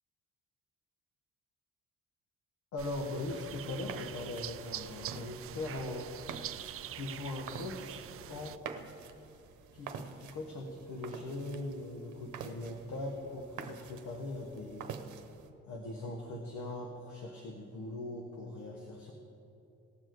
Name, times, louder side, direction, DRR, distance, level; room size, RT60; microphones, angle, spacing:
voice 1, 2.7-6.1 6.9-8.6 9.7-15.0 15.7-19.1, left 2 dB, 75° left, 1 dB, 1.4 m, -40 dB
sound 1, 2.8-8.6, right 11 dB, 50° right, 0.4 m, -45 dB
sound 2, 3.5-15.5, right 7 dB, 75° right, 1.0 m, -48 dB
18.5 x 6.9 x 4.7 m, 2.9 s
cardioid pair, 90°, 30 cm